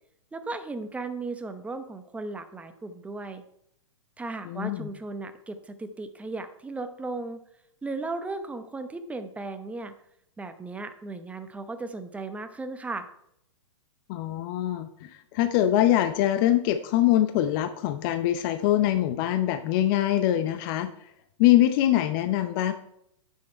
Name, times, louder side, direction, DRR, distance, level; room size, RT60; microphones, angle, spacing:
voice 1, 0.3-3.4 4.2-7.4 7.8-9.9 10.4-13.1, right 3 dB, 10° right, 8 dB, 0.8 m, -36 dB
voice 2, 4.5-4.9 14.1-20.9 21.4-22.7, left 13 dB, 45° left, 9 dB, 0.7 m, -23 dB
9.2 x 6.6 x 4.4 m, 0.75 s
hypercardioid pair, 120°, 16 cm